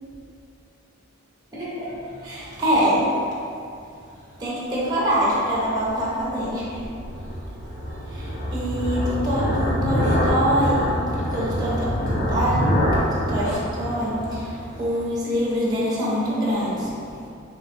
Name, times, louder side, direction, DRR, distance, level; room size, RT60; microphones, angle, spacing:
voice 1, 1.5-3.2 4.4-6.9 7.2-7.3 8.1-12.7 13.0-16.9 17.2-17.3, equal, 20° right, -7 dB, 0.6 m, -25 dB
sound 1, 5.5-15.0, equal, 45° left, 0.6 m, -25 dB
3.3 x 3.0 x 3.1 m, 2.5 s
head